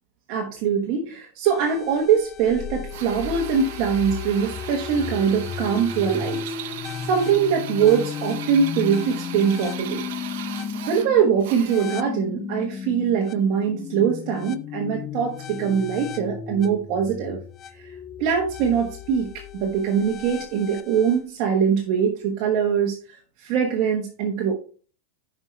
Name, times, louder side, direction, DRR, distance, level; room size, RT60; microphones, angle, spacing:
voice 1, 0.3-6.4 7.1-10.1 10.9-17.4 17.8-17.9 18.2-19.3 19.5-23.0 23.4-24.5, right 7 dB, 35° right, 1 dB, 1.2 m, -22 dB
sound 1, 1.4-21.2, left 7 dB, 20° left, 0.4 m, -34 dB
Drill, 2.9-12.2, right 11 dB, 55° right, 1.0 m, -38 dB
10.5 x 5.4 x 3.2 m, 0.39 s
supercardioid pair, 180°, 0 cm